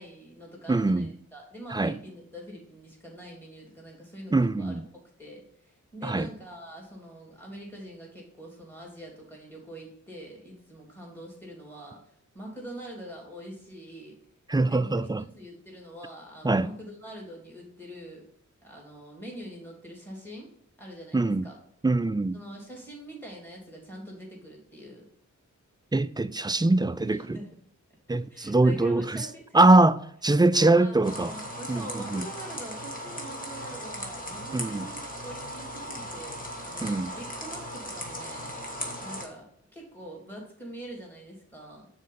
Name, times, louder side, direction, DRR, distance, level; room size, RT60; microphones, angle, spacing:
voice 1, 0.0-4.8 5.2-14.1 14.6-18.2 18.6-20.5 20.8-21.6 22.3-25.0 27.0-27.5 28.3-29.6 30.5-39.4 39.7-41.9, right 1 dB, 5° left, 3.1 m, -44 dB
voice 2, 0.7-1.1 1.7-1.9 4.3-4.8 6.0-6.3 14.5-15.2 16.4-16.7 21.1-21.5 21.8-22.4 25.9-27.4 28.1-29.3 29.5-31.3 31.7-31.8 32.1-32.3 34.5-34.9 36.8-37.1, right 2 dB, 15° right, 0.3 m, -23 dB
sound 1, 31.0-39.3, equal, 25° left, 1.6 m, -38 dB
6.3 x 4.3 x 5.6 m
wide cardioid pair, 60°, 31 cm